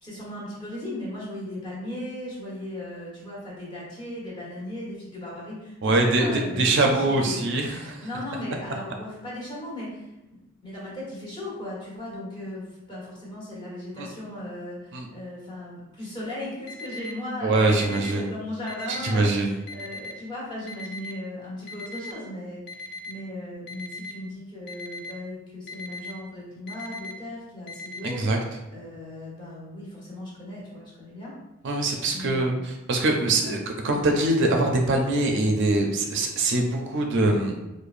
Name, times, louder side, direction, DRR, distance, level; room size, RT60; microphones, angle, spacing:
voice 1, 0.0-7.4 7.7-28.3 28.7-31.3 31.8-32.7 33.4-33.5, left 1 dB, 25° left, -7 dB, 1.3 m, -37 dB
voice 2, 5.8-8.0 14.0-14.1 14.9-15.1 17.4-18.3 19.0-19.5 28.0-28.4 31.6-32.5 32.9-33.6 33.8-37.6, right 2 dB, 60° right, 2 dB, 0.5 m, -23 dB
Alarm, 16.7-17.1 17.7-18.1 18.7-19.1 19.7-20.1 20.7-21.1 21.7-22.1 22.7-23.1 23.7-24.1 24.7-25.1 25.7-26.1 26.7-27.1 27.7-28.1, left 3 dB, 55° left, 0.4 m, -38 dB
4.8 x 2.1 x 2.5 m, 0.98 s
head